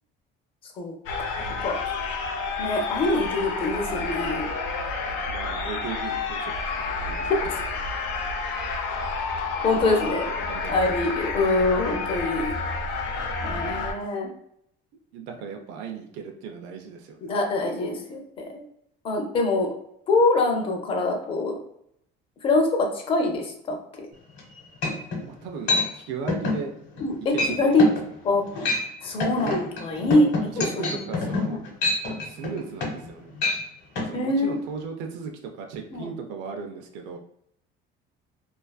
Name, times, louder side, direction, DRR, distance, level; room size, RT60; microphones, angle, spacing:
voice 1, 0.8-1.8 2.6-4.5 7.3-7.6 9.6-10.3 10.7-12.5 13.4-14.3 17.3-18.6 19.0-19.7 20.1-21.6 22.4-24.1 27.0-27.8 28.2-28.4 29.0-31.0 31.5-31.6 34.1-34.5 35.9-36.1, left 2 dB, 30° left, 2 dB, 0.4 m, -24 dB
sound 1, 1.1-13.9, left 4 dB, 85° left, 0.5 m, -30 dB
voice 2, 5.3-7.3 9.8-10.9 15.1-17.2 25.2-26.7 27.3-27.9 30.5-31.6 32.2-33.3 34.0-37.2, right 6 dB, 75° right, 3 dB, 0.4 m, -36 dB
sound 2, 24.4-24.5 24.8-25.2 25.7-25.9 26.3-26.6 26.9-27.1 27.4-27.5 27.8-28.0 28.5-28.9 29.2-33.1 33.4-33.6 34.0-34.1, left 3 dB, 70° left, 0.9 m, -26 dB
2.3 x 2.3 x 2.2 m, 0.73 s
cardioid pair, 175°, 19 cm